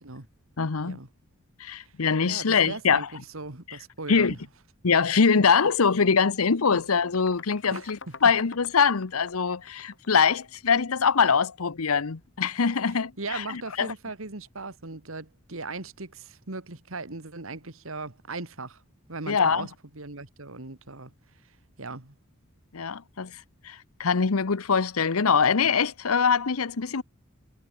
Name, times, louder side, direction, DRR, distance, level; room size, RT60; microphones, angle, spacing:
voice 1, 0.6-1.0 1.6-3.1 4.1-4.3 4.8-13.9 19.3-19.7 22.7-23.4 23.6-27.0, left 5 dB, 90° left, 0.9 m, -23 dB
voice 2, 2.3-3.1 3.3-4.4 7.7-8.1 13.2-18.8 19.1-21.1 21.8-22.2, right 3 dB, 70° right, 2.1 m, -38 dB
sound 1, 5.3-5.4 5.7-10.7, left 5 dB, 60° left, 3.0 m, -46 dB
head